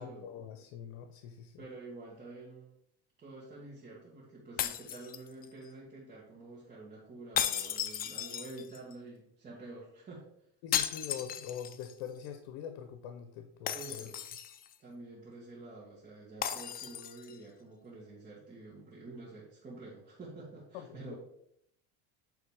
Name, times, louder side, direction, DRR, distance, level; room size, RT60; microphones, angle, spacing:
voice 1, 0.0-1.6 10.6-14.1 20.7-21.2, left 8 dB, 75° left, 7 dB, 0.8 m, -44 dB
voice 2, 1.6-2.7 3.2-10.3 13.7-14.2 14.8-21.2, right 2 dB, 25° right, -7 dB, 1.7 m, -48 dB
sound 1, 4.6-5.7 7.4-8.9 10.7-11.9 12.3-12.4 13.7-14.7 16.4-17.4, left 10 dB, 30° left, 0.4 m, -35 dB
8.6 x 3.3 x 4.8 m, 0.74 s
cardioid pair, 130°, 34 cm